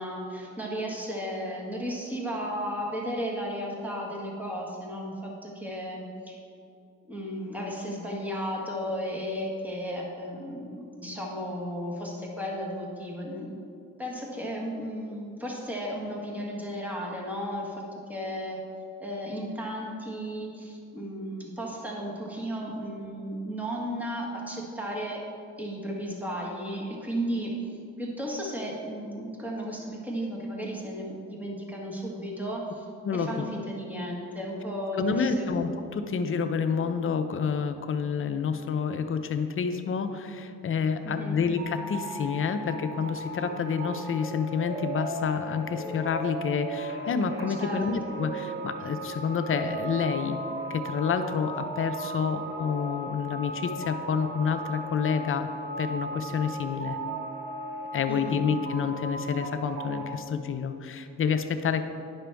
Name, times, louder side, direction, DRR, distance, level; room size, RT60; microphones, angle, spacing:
voice 1, 0.0-6.4 7.1-13.5 14.0-17.7 18.1-18.6 19.0-25.2 25.6-27.6 28.0-32.8 33.1-35.5 41.0-41.3 47.5-48.1 58.1-58.4, equal, 5° right, -2 dB, 1.5 m, -34 dB
voice 2, 33.0-33.5 34.9-50.4 50.7-55.5 55.8-57.0 57.9-61.8, left 6 dB, 45° left, 8 dB, 0.6 m, -28 dB
sound 1, 41.6-60.1, right 1 dB, 40° right, 1.1 m, -36 dB
10.0 x 6.0 x 3.4 m, 2.6 s
cardioid pair, 90°, 30 cm